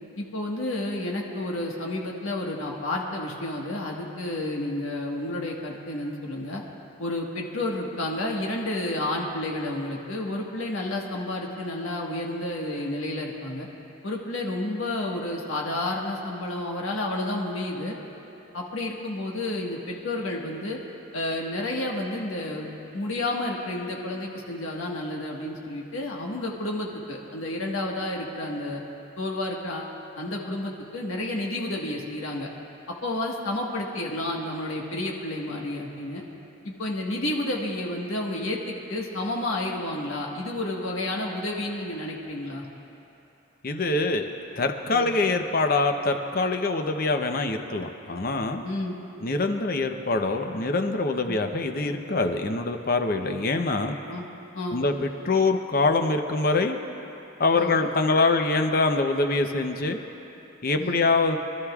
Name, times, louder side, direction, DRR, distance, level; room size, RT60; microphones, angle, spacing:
voice 1, 0.2-6.6 7.0-13.7 14.0-18.0 18.5-20.8 21.1-22.7 22.9-28.8 29.2-32.5 33.0-36.2 36.8-42.7 44.9-45.1 48.6-49.0 51.3-51.4 54.1-54.3 54.5-54.8 57.5-57.8 60.8-61.1, left 1 dB, 90° left, -2 dB, 1.5 m, -30 dB
voice 2, 43.6-44.3 44.6-48.6 49.2-54.0 54.7-54.9 55.2-56.8 57.4-60.0 60.6-61.4, left 3 dB, 45° left, 5 dB, 0.8 m, -24 dB
25.0 x 13.0 x 2.4 m, 3.0 s
head